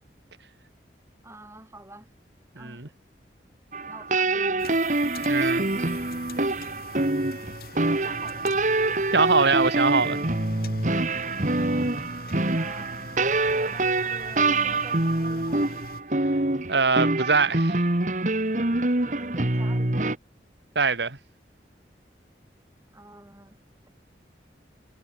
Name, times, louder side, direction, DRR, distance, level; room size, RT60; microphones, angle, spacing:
voice 1, 1.2-2.1 2.5-2.9 3.9-4.8 7.9-8.6 11.6-11.9 12.5-13.0 13.5-15.8 19.0-20.2 22.9-23.6, right 1 dB, 15° right, 6.5 m, -47 dB
sound 1, 3.7-20.2, right 2 dB, 45° right, 1.7 m, -25 dB
sound 2, 4.6-16.0, left 2 dB, 55° left, 3.8 m, -43 dB
voice 2, 5.3-5.6 9.1-10.2 16.7-17.8 20.8-21.2, right 4 dB, 75° right, 2.0 m, -23 dB
head